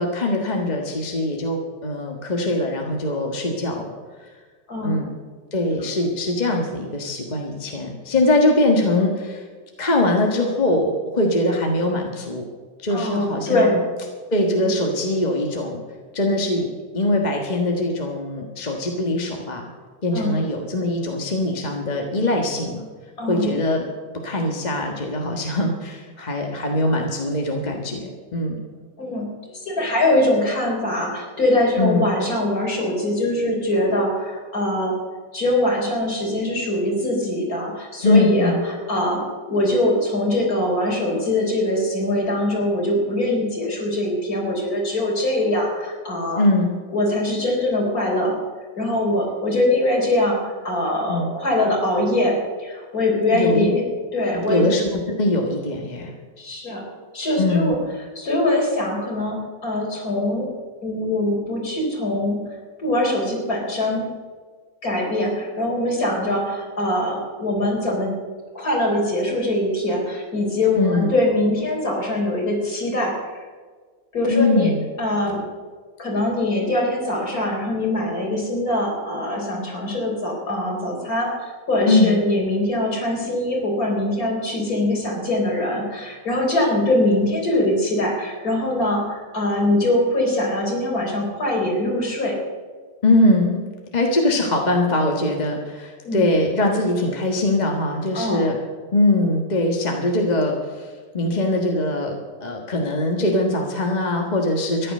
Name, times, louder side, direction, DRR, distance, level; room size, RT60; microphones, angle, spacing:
voice 1, 0.0-4.0 4.8-5.1 5.5-9.4 9.8-12.4 12.8-13.8 14.3-15.8 16.1-16.7 16.9-19.6 20.0-22.8 23.3-23.8 24.2-28.6 31.8-32.0 38.0-38.6 46.4-46.7 51.1-51.3 53.3-53.7 54.5-56.1 57.4-57.8 70.8-71.1 74.3-74.8 81.9-82.1 93.0-93.6 93.9-98.6 98.9-104.9, left 1 dB, 25° left, 1 dB, 1.5 m, -22 dB
voice 2, 4.7-5.0 12.9-13.7 20.1-20.3 23.2-23.5 29.0-29.3 29.5-34.9 35.3-39.2 39.5-46.4 46.9-48.3 48.8-53.8 54.1-54.6 56.4-56.8 57.1-57.8 58.1-60.5 60.8-62.4 62.8-64.0 64.8-68.1 68.5-73.1 74.1-74.7 75.0-75.4 76.0-92.4 96.0-96.2 98.1-98.4, left 1 dB, 55° left, -1 dB, 4.4 m, -22 dB
14.0 x 11.0 x 6.6 m, 1.5 s
omnidirectional pair, 1.9 m